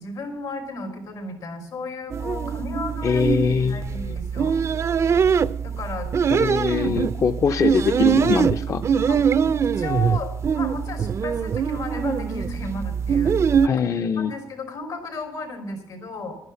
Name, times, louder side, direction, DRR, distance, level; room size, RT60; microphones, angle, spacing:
voice 1, 0.0-4.6 5.6-6.1 6.8-7.0 9.1-9.2 9.6-13.6 14.2-16.4, left 3 dB, 90° left, 5 dB, 3.4 m, -34 dB
sound 1, 2.1-13.7, right 7 dB, 45° right, 0.4 m, -23 dB
voice 2, 3.0-4.2 6.3-8.8 13.6-14.3, left 6 dB, 50° left, 9 dB, 0.5 m, -23 dB
12.0 x 9.7 x 6.9 m, 0.77 s
cardioid pair, 120°, 7 cm